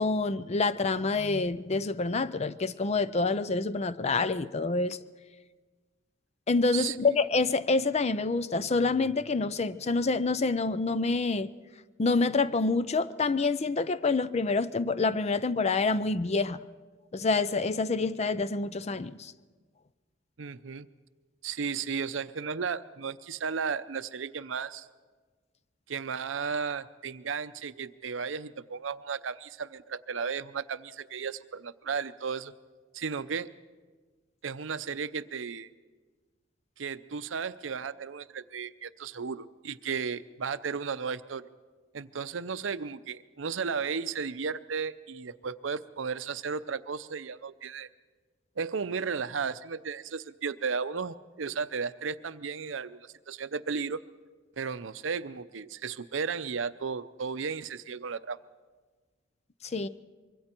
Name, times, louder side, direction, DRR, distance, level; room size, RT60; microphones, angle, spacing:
voice 1, 0.0-5.0 6.5-11.5 12.0-16.6 17.1-19.3 59.7-59.9, left 3 dB, 35° left, 0.5 m, -27 dB
voice 2, 6.7-7.2 20.4-20.9 21.4-24.9 25.9-32.5 32.9-33.5 34.4-35.7 36.8-41.5 41.9-47.9 48.6-54.0 54.6-58.4, right 5 dB, 90° right, 0.6 m, -34 dB
25.0 x 23.5 x 4.5 m
head